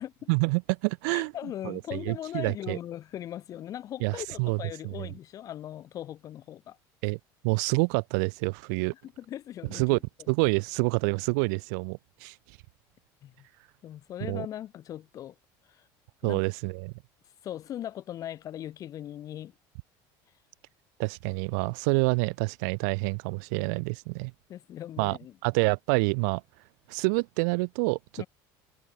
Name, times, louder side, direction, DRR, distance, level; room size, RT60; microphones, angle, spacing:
voice 1, 0.3-1.3 1.6-2.8 4.0-4.6 5.0-5.1 7.0-7.2 7.4-8.9 9.7-10.0 10.3-12.4 14.3-14.5 16.2-16.9 21.0-24.3 25.0-26.4 26.9-28.0, right 33 dB, 85° right, 0.4 m, -27 dB
voice 2, 1.1-6.8 8.9-10.0 13.2-13.5 13.8-15.3 15.8-15.9 16.2-16.4 17.4-19.5 24.5-25.3 28.2-28.3, left 11 dB, 40° left, 2.8 m, -39 dB
cardioid pair, 155°, 9 cm